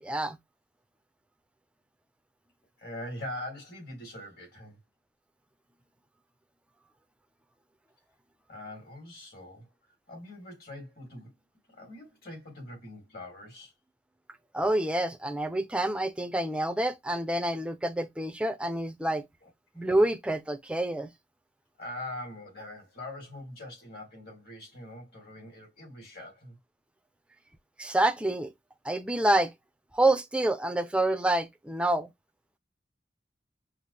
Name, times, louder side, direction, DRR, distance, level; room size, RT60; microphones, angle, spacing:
voice 1, 0.0-0.4 14.5-19.2 19.8-21.1 27.8-28.5 28.8-29.5 29.9-32.1, right 1 dB, 5° right, 0.5 m, -27 dB
voice 2, 2.8-4.8 8.5-9.7 10.1-11.3 11.7-13.7 19.4-19.5 19.7-19.8 21.8-26.6, left 1 dB, 55° left, 2.9 m, -42 dB
5.7 x 2.0 x 3.3 m
head